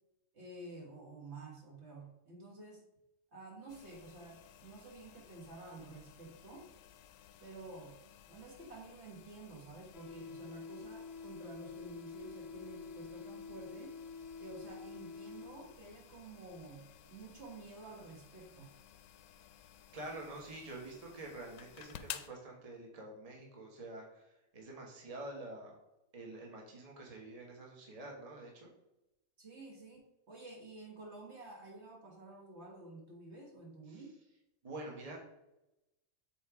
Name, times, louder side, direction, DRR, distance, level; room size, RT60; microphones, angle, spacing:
voice 1, 0.3-2.8 3.3-6.7 7.4-8.0 8.3-13.9 14.4-18.7 29.4-34.1, right 2 dB, 50° right, -1 dB, 1.7 m, -51 dB
sound 1, 3.7-22.3, left 10 dB, 85° left, 1.1 m, -55 dB
sound 2, 9.9-15.9, left 5 dB, 50° left, 0.9 m, -48 dB
voice 2, 19.9-24.2 24.5-25.7 26.1-28.7 33.9-34.0 34.6-35.2, right 2 dB, 25° right, -1 dB, 1.4 m, -47 dB
7.8 x 3.6 x 4.9 m, 0.92 s
omnidirectional pair, 1.5 m